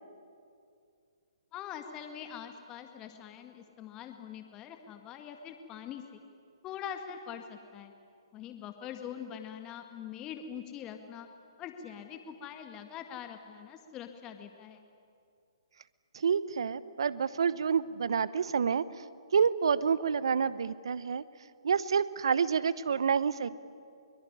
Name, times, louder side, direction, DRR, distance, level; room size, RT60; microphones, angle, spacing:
voice 1, 1.5-6.2 6.6-7.9 8.3-11.3 11.6-14.8, left 8 dB, 20° left, 6 dB, 2.0 m, -43 dB
voice 2, 16.1-19.0 19.3-21.2 21.6-23.5, right 6 dB, 65° right, 17 dB, 1.0 m, -28 dB
23.0 x 22.5 x 9.9 m, 2.4 s
figure-of-eight pair, 135°, 3 cm